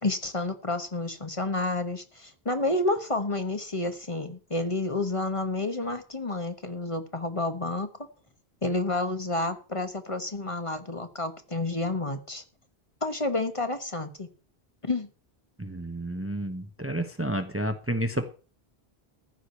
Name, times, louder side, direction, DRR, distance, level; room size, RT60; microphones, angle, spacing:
voice 1, 0.0-7.9 8.6-12.4 13.0-14.3 14.8-15.1, left 2 dB, 30° left, 8 dB, 1.3 m, -30 dB
voice 2, 15.6-18.3, right 1 dB, 15° right, 8 dB, 0.9 m, -30 dB
14.5 x 5.0 x 8.1 m, 0.38 s
omnidirectional pair, 1.0 m